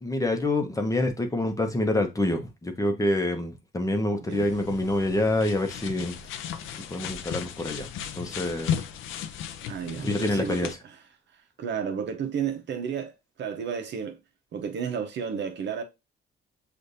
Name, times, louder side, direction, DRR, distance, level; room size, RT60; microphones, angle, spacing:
voice 1, 0.0-6.2 6.7-7.9 8.2-8.8 10.0-10.8, left 1 dB, 15° left, 0.8 m, -27 dB
sound 1, 4.3-10.7, left 8 dB, 90° left, 0.5 m, -35 dB
voice 2, 9.7-10.7 11.6-13.1 13.4-14.2 14.5-15.8, right 7 dB, 65° right, 0.8 m, -31 dB
6.4 x 2.5 x 2.7 m
cardioid pair, 90°, 20 cm